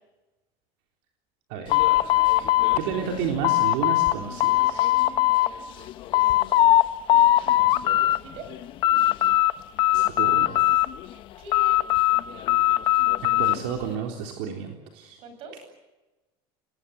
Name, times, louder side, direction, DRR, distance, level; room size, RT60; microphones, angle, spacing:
voice 1, 1.5-1.8 2.8-4.9 9.9-10.6 13.2-15.2, right 7 dB, 70° right, 2 dB, 3.7 m, -31 dB
sound 1, 1.7-4.2 4.4-5.5 5.9-6.8 7.1-8.2 8.5-9.5 9.8-11.1 11.5-13.6, left 15 dB, 40° left, 1.0 m, -20 dB
voice 2, 6.2-6.9 7.9-8.5 11.4-11.8 15.2-15.6, right 3 dB, 45° right, 9 dB, 7.6 m, -44 dB
29.0 x 20.5 x 8.1 m, 1.1 s
cardioid pair, 165°, 12 cm